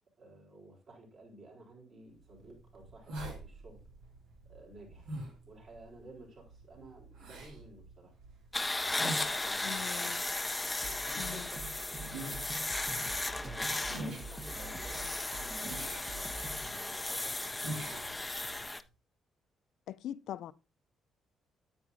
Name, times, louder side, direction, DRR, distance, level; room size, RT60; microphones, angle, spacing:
voice 1, 0.2-3.8 4.4-5.1 5.5-8.1 8.7-10.2 10.8-12.4 12.9-18.3, right 2 dB, 50° right, 4.0 m, -54 dB
sound 1, 2.2-18.8, right 1 dB, 90° right, 3.0 m, -47 dB
sound 2, 8.5-18.8, left 2 dB, 10° left, 0.4 m, -36 dB
voice 2, 9.6-10.2 11.2-11.5 19.9-20.5, left 11 dB, 75° left, 0.5 m, -42 dB
Drum kit, 10.8-16.8, right 2 dB, 30° right, 0.9 m, -46 dB
9.6 x 8.5 x 2.6 m
cardioid pair, 155°, 0 cm